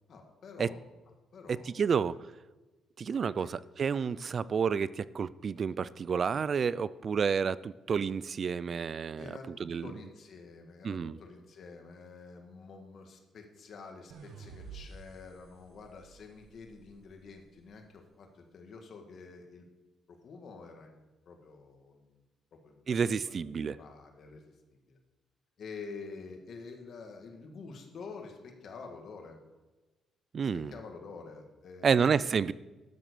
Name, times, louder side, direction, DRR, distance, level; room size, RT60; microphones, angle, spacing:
voice 1, 0.1-0.8 1.3-1.7 3.4-3.5 9.2-19.6 20.1-22.1 22.5-23.3 23.7-24.4 24.9-25.0 25.6-29.4 30.4-32.1, left 4 dB, 45° left, 3 dB, 1.9 m, -48 dB
voice 2, 1.7-2.1 3.0-9.3 9.6-9.9 10.8-11.2 22.9-23.8 30.3-30.7 31.8-32.5, right 6 dB, 35° right, 19 dB, 0.3 m, -30 dB
sound 1, 14.1-17.3, right 5 dB, 75° right, 1.4 m, -51 dB
13.0 x 7.4 x 6.9 m, 1.2 s
cardioid pair, 165°, 0 cm